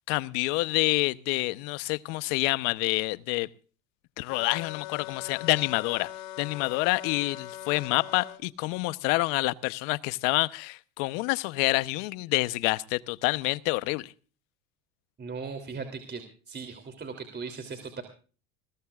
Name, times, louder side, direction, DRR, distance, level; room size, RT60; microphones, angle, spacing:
voice 1, 0.1-3.5 4.2-6.1 6.4-14.1, left 22 dB, 75° left, 1.0 m, -27 dB
sound 1, 4.3-8.4, left 15 dB, 90° left, 1.9 m, -41 dB
voice 2, 15.2-16.2 16.5-18.0, right 5 dB, 25° right, 3.2 m, -38 dB
20.5 x 20.0 x 2.4 m
supercardioid pair, 100°, 39 cm